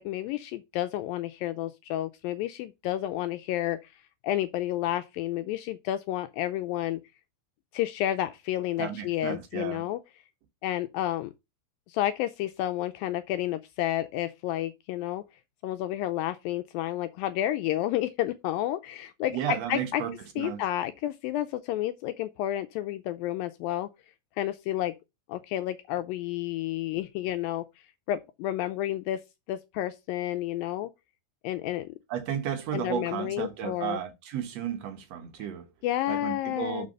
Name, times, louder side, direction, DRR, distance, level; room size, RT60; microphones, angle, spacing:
voice 1, 0.0-3.8 4.2-7.0 7.7-10.0 10.6-11.3 11.9-15.2 15.6-20.0 20.4-23.9 24.4-24.9 25.3-27.6 28.1-29.2 29.5-30.9 31.4-31.9 32.7-34.0 35.8-36.9, left 13 dB, 80° left, 2.1 m, -30 dB
voice 2, 8.8-9.8 19.3-20.6 32.1-35.7 36.1-36.9, right 9 dB, 65° right, 1.6 m, -33 dB
6.8 x 5.3 x 5.3 m
omnidirectional pair, 4.4 m